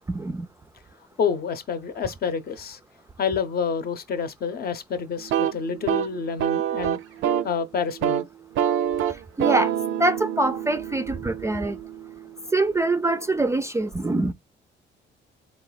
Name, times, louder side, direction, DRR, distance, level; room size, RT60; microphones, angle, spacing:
voice 1, 0.1-0.5 9.4-9.7 10.0-11.8 12.5-14.3, right 2 dB, 15° right, 0.3 m, -24 dB
voice 2, 1.2-2.8 3.2-7.0 7.4-8.3, left 6 dB, 50° left, 0.7 m, -28 dB
sound 1, 5.2-7.6 7.9-8.2 8.6-12.4, right 10 dB, 80° right, 0.4 m, -26 dB
3.9 x 2.4 x 3.9 m
cardioid pair, 90°, 20 cm